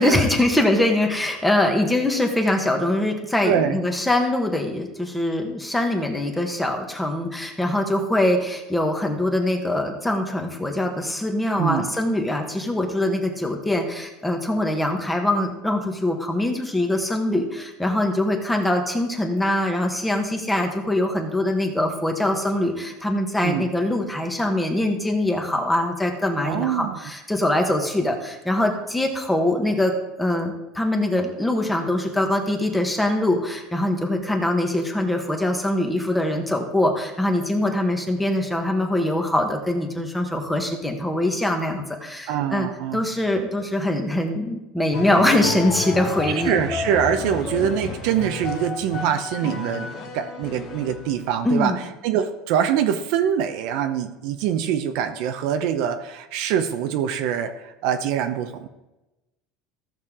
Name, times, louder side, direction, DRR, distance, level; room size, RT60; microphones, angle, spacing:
voice 1, 0.0-42.7 42.9-46.6 47.2-47.3 51.4-51.8, left 1 dB, 5° left, 3 dB, 1.4 m, -23 dB
voice 2, 3.4-3.8 11.6-11.9 23.4-23.7 26.4-27.0 42.3-43.0 46.4-49.9 50.1-51.7 52.0-58.7, right 9 dB, 65° right, 8 dB, 0.8 m, -24 dB
sound 1, 44.9-51.4, left 5 dB, 45° left, 1.4 m, -32 dB
14.5 x 6.6 x 3.7 m, 1.0 s
supercardioid pair, 135°, 0 cm